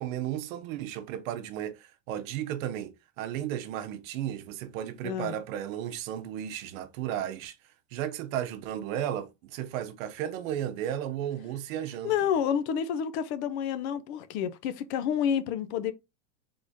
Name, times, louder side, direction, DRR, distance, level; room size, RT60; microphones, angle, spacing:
voice 1, 0.0-7.6 7.9-12.1, right 11 dB, 80° right, 0.8 m, -34 dB
voice 2, 5.0-5.4 12.0-15.9, left 8 dB, 55° left, 0.6 m, -29 dB
3.7 x 3.5 x 2.6 m
supercardioid pair, 165°, 40 cm